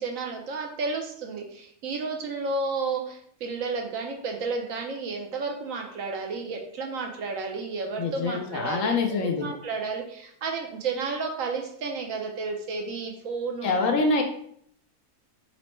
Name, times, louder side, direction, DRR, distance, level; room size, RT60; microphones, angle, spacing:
voice 1, 0.0-13.8, right 4 dB, 70° right, 2 dB, 0.9 m, -32 dB
voice 2, 8.0-9.5 13.6-14.2, left 3 dB, 65° left, 3 dB, 0.9 m, -25 dB
4.1 x 2.1 x 4.2 m, 0.66 s
omnidirectional pair, 1.6 m